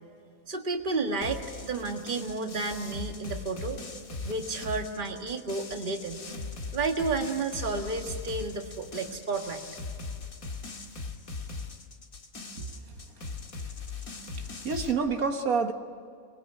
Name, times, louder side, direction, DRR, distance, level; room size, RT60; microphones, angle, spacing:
voice 1, 0.5-3.8 4.2-6.2 6.7-9.6, right 3 dB, 35° right, 1.8 m, -31 dB
sound 1, 1.2-14.9, left 4 dB, 90° left, 2.4 m, -40 dB
voice 2, 14.4-15.7, right 5 dB, 85° right, 1.9 m, -28 dB
26.5 x 21.0 x 9.6 m
omnidirectional pair, 1.4 m